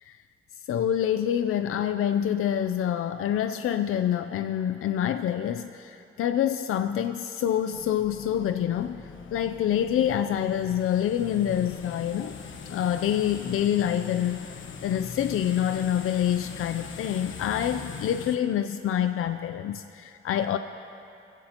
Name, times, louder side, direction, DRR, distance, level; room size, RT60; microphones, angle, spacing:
voice 1, 0.7-12.4 12.7-20.6, left 10 dB, 85° left, 9 dB, 0.5 m, -27 dB
sound 1, 7.7-18.4, left 5 dB, 70° left, 1.1 m, -40 dB
26.0 x 16.0 x 2.9 m, 2.6 s
cardioid pair, 115°, 21 cm